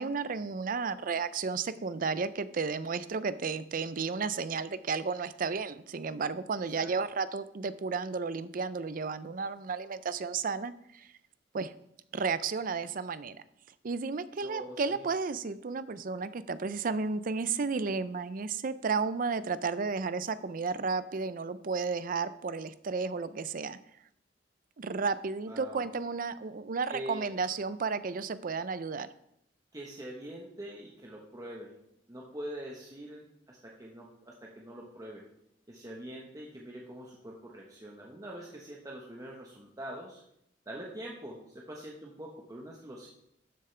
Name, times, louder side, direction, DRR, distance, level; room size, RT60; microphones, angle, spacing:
voice 1, 0.0-11.1 11.5-11.7 12.1-13.4 13.8-23.8 24.8-29.1, right 4 dB, 50° right, 14 dB, 0.5 m, -33 dB
voice 2, 14.4-15.1 25.5-25.9 26.9-27.3 29.7-31.7 32.1-35.2 35.7-40.2 40.7-43.1, right 1 dB, 20° right, -3 dB, 1.2 m, -44 dB
12.5 x 7.4 x 3.3 m, 0.76 s
head